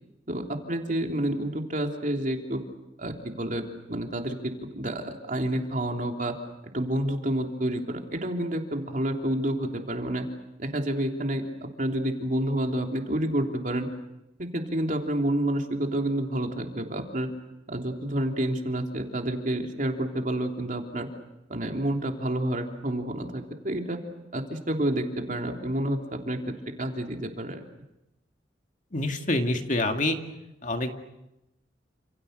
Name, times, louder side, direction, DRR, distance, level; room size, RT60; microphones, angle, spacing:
voice 1, 0.3-2.6 3.0-3.6 3.9-6.3 6.7-10.2 10.6-13.9 14.4-17.3 17.7-21.1 21.5-24.0 24.3-26.4 26.8-27.6, right 1 dB, 45° right, 3 dB, 3.3 m, -29 dB
voice 2, 28.9-30.2 30.6-30.9, left 2 dB, 45° left, 5 dB, 2.3 m, -26 dB
29.5 x 28.0 x 6.7 m, 0.90 s
head